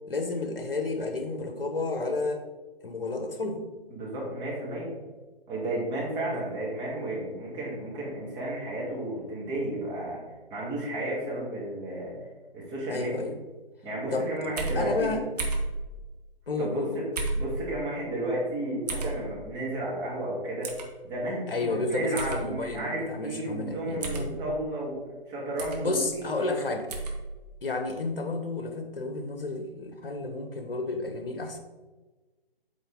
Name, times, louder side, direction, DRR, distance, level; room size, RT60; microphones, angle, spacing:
voice 1, 0.1-2.4 2.8-3.6 6.3-6.4 12.9-13.3 14.1-15.2 16.5-17.0 21.5-24.5 25.8-26.9 27.6-31.6, left 3 dB, 65° left, 6 dB, 1.1 m, -31 dB
voice 2, 3.9-4.9 5.5-10.2 10.5-12.1 12.5-13.2 13.8-15.2 16.6-17.1 17.3-20.7 21.0-25.0 25.3-26.6, right 1 dB, 15° right, -5 dB, 1.7 m, -33 dB
sound 1, 14.6-14.8 15.4-15.7 17.2-17.5 18.9-19.1 20.6-20.9 22.2-22.4 24.0-24.3 25.6-25.8 26.9-27.2, right 3 dB, 40° right, 1.1 m, -31 dB
8.2 x 3.9 x 3.7 m, 1.2 s
figure-of-eight pair, 135°, 30 cm